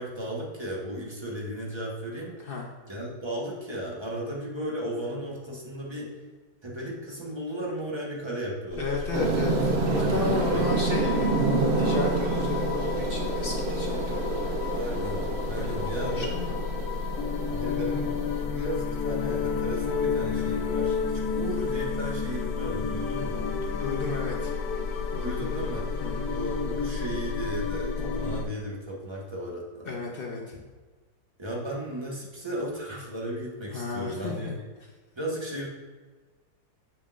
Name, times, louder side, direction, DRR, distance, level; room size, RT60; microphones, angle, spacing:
voice 1, 0.0-2.5 2.9-6.1 6.6-9.0 9.9-10.7 14.7-16.3 17.5-23.6 25.2-29.9 31.4-34.5 35.1-35.7, right 1 dB, 20° right, -3 dB, 0.9 m, -35 dB
sound 1, 8.7-28.4, left 5 dB, 85° left, 1.3 m, -31 dB
voice 2, 8.8-9.6 9.8-14.5 15.5-16.6 23.7-24.5 25.1-25.7 26.0-26.3 29.9-30.6 33.7-34.5, left 4 dB, 55° left, -1 dB, 0.6 m, -33 dB
sound 2, 9.1-18.5, right 3 dB, 60° right, 0.7 m, -28 dB
7.3 x 5.6 x 2.4 m, 1.3 s
omnidirectional pair, 1.8 m